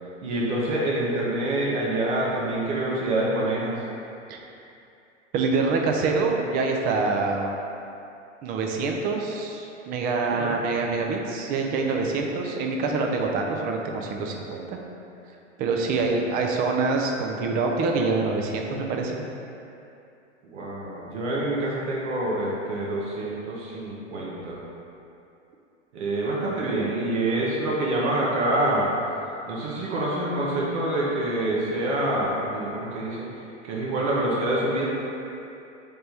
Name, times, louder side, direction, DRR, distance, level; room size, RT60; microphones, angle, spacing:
voice 1, 0.2-3.8 10.4-10.6 15.9-16.0 20.4-24.6 25.9-28.9 29.5-33.3 33.6-34.9, right 1 dB, 65° right, -5 dB, 0.9 m, -26 dB
voice 2, 5.3-7.5 8.4-14.8 15.6-19.3, right 3 dB, 25° right, 1 dB, 0.4 m, -25 dB
3.4 x 3.3 x 4.2 m, 2.7 s
hypercardioid pair, 105°, 37 cm